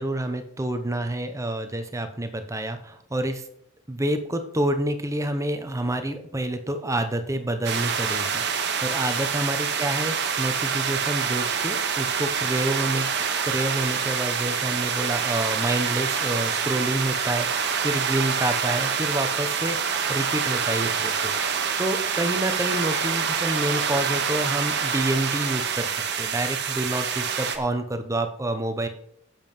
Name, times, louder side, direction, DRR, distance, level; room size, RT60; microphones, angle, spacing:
voice 1, 0.0-3.4 3.9-19.8 20.1-21.4 21.8-25.9 26.2-28.9, right 1 dB, 15° right, 7 dB, 1.0 m, -28 dB
sound 1, 7.6-27.6, right 6 dB, 55° right, 1.4 m, -26 dB
10.5 x 7.5 x 5.6 m, 0.70 s
head